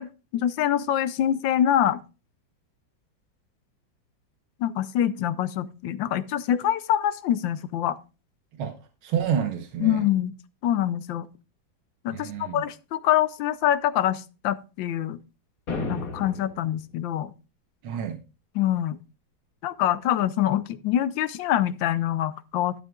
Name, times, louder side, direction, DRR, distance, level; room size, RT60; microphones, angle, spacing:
voice 1, 0.0-2.0 4.6-8.0 9.8-10.3 10.6-11.3 12.0-15.2 15.9-17.3 18.5-19.0 19.6-22.7, left 11 dB, 75° left, 1.3 m, -25 dB
voice 2, 9.0-10.0 12.1-12.7 17.8-18.2, right 8 dB, 90° right, 1.9 m, -28 dB
sound 1, 15.7-16.7, left 3 dB, 50° left, 1.7 m, -32 dB
12.0 x 11.0 x 2.4 m
omnidirectional pair, 2.2 m